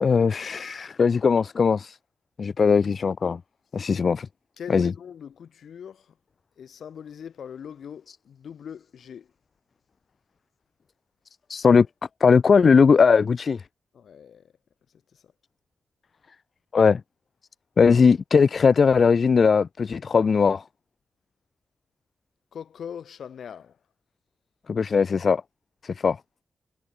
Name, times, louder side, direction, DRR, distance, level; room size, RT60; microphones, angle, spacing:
voice 1, 0.0-2.0 2.4-3.4 3.7-4.3 4.7-4.9 11.5-11.9 12.2-13.6 16.7-17.0 17.8-20.6 24.7-25.4 25.8-26.2, left 5 dB, 45° left, 0.4 m, -19 dB
voice 2, 4.6-6.1 6.6-9.3 13.9-14.5 15.1-15.3 22.5-23.8, left 8 dB, 70° left, 2.6 m, -41 dB
wide cardioid pair, 135°, 0 cm